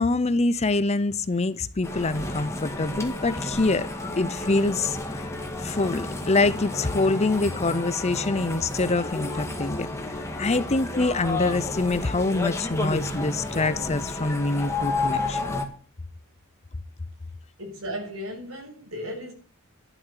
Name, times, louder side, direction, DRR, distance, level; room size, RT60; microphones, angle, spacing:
voice 1, 0.0-3.9 4.2-5.3 5.6-9.9 10.4-15.5, left 3 dB, 30° left, 0.7 m, -25 dB
sound 1, 1.8-15.6, left 2 dB, 15° left, 1.9 m, -31 dB
voice 2, 17.6-19.3, equal, 70° right, 6.6 m, -35 dB
12.0 x 7.3 x 10.0 m
head